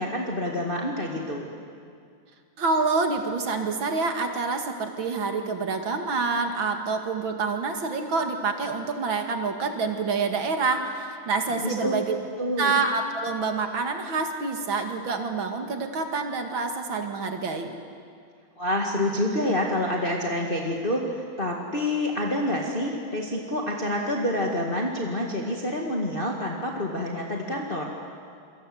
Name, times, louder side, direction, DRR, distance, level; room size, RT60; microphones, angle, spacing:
voice 1, 0.0-1.5 11.6-11.9 12.4-12.7 18.6-21.0 21.4-27.9, left 1 dB, 25° left, -1 dB, 2.1 m, -27 dB
voice 2, 2.6-12.2 12.6-17.8, right 4 dB, 70° right, 5 dB, 2.8 m, -27 dB
27.5 x 25.0 x 7.9 m, 2.2 s
omnidirectional pair, 2.2 m